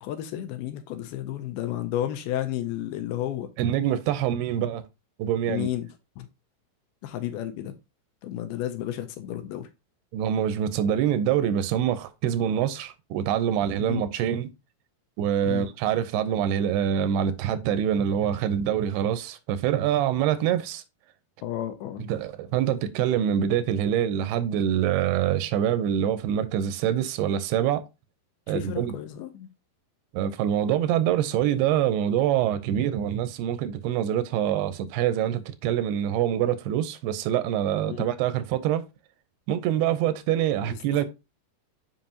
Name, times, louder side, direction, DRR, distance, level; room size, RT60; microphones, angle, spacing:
voice 1, 0.0-3.5 5.5-5.9 6.2-6.3 7.0-7.7 8.2-9.7 13.8-14.1 15.4-15.7 21.4-22.1 28.5-29.5 37.9-38.0 40.6-41.1, left 12 dB, 85° left, 2.5 m, -32 dB
voice 2, 3.6-4.8 5.2-5.7 10.1-14.5 15.2-20.8 22.1-27.8 28.5-29.0 30.1-38.8 39.5-41.1, right 10 dB, 90° right, 2.7 m, -25 dB
7.5 x 5.4 x 2.8 m
omnidirectional pair, 4.6 m